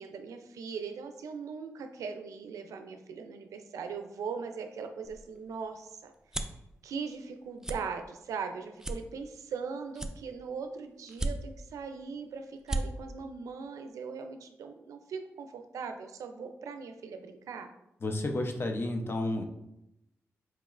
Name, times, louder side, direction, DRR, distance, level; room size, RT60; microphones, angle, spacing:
voice 1, 0.0-6.4 6.8-17.7, right 5 dB, 90° right, 6 dB, 0.4 m, -40 dB
sound 1, 5.0-6.6 7.1-7.3 7.6-7.8 8.3-8.4 8.8-9.6 9.9-10.6 11.1-11.7 12.2-12.3 12.5-12.8, right 1 dB, 10° right, 0.4 m, -35 dB
voice 2, 18.0-19.4, left 1 dB, 45° left, 3 dB, 0.6 m, -31 dB
4.6 x 2.9 x 2.4 m, 0.85 s
cardioid pair, 60°, 5 cm